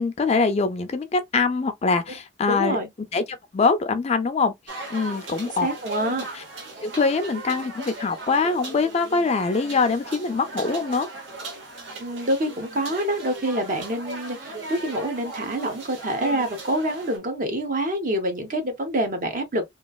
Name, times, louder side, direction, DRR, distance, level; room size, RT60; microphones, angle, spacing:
voice 1, 0.0-4.5 4.9-5.7 6.1-6.4 6.8-11.1, left 4 dB, 35° left, 0.4 m, -23 dB
voice 2, 2.5-2.9 5.6-6.2 12.0-19.7, right 1 dB, 45° right, 0.8 m, -26 dB
sound 1, 4.7-17.2, right 2 dB, 75° right, 1.0 m, -38 dB
3.0 x 2.3 x 2.3 m
head